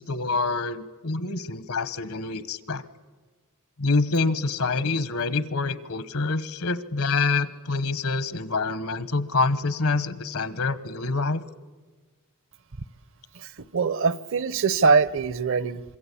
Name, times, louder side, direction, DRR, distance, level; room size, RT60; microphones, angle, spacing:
voice 1, 0.0-2.8 3.8-11.4, left 3 dB, 80° left, 15 dB, 1.2 m, -26 dB
voice 2, 13.4-15.8, right 5 dB, 60° right, 18 dB, 0.8 m, -23 dB
25.5 x 23.0 x 8.5 m, 1.3 s
head